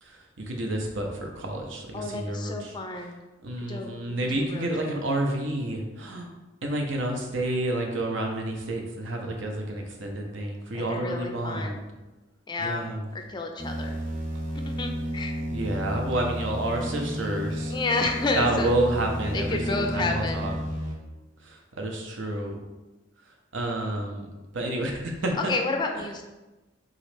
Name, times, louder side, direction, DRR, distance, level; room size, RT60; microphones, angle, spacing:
voice 1, 0.0-2.8 3.4-6.3 6.6-11.8 12.6-13.0 15.5-17.7 18.4-20.5 21.4-22.6 23.5-24.2 24.5-25.5, right 1 dB, 80° right, 2 dB, 0.7 m, -29 dB
voice 2, 1.9-3.2 3.7-3.9 4.3-5.0 10.7-11.8 12.5-12.8 13.1-14.0 14.5-15.5 17.7-18.7 19.3-20.5 25.5-26.2, left 3 dB, 25° left, 3 dB, 0.3 m, -30 dB
sound 1, 13.6-20.9, equal, 45° right, 0.9 m, -32 dB
3.8 x 3.1 x 3.2 m, 1.1 s
head